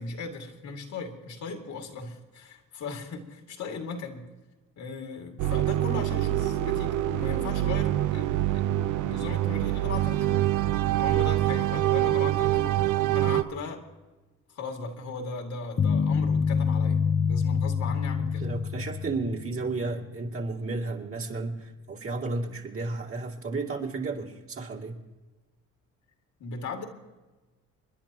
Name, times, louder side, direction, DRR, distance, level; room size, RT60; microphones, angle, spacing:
voice 1, 0.0-4.3 4.8-10.5 11.0-12.8 13.1-13.8 14.5-18.5 26.4-26.8, left 4 dB, 70° left, 4 dB, 2.3 m, -38 dB
sound 1, 5.4-13.4, right 14 dB, 80° right, 0.7 m, -25 dB
sound 2, 15.8-20.0, left 6 dB, 35° left, 0.7 m, -26 dB
voice 2, 18.4-25.0, right 3 dB, 45° right, -1 dB, 2.7 m, -33 dB
29.5 x 11.0 x 3.0 m, 1.2 s
cardioid pair, 90°, 30 cm